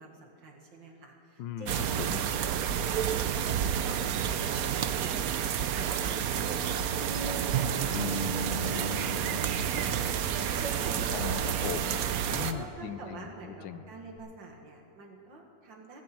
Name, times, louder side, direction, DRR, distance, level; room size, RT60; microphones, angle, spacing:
voice 1, 0.0-2.5 2.8-5.3 5.7-11.3 12.5-16.0, right 2 dB, 85° right, 2 dB, 2.5 m, -46 dB
voice 2, 1.4-2.2 11.1-13.8, left 9 dB, 80° left, 11 dB, 1.4 m, -39 dB
sound 1, 1.7-12.5, right 9 dB, 65° right, 1.0 m, -30 dB
sound 2, 5.9-12.7, right 3 dB, 40° right, 0.5 m, -46 dB
Bass guitar, 7.9-14.2, equal, 40° left, 1.4 m, -41 dB
17.0 x 14.0 x 4.6 m, 3.0 s
omnidirectional pair, 2.0 m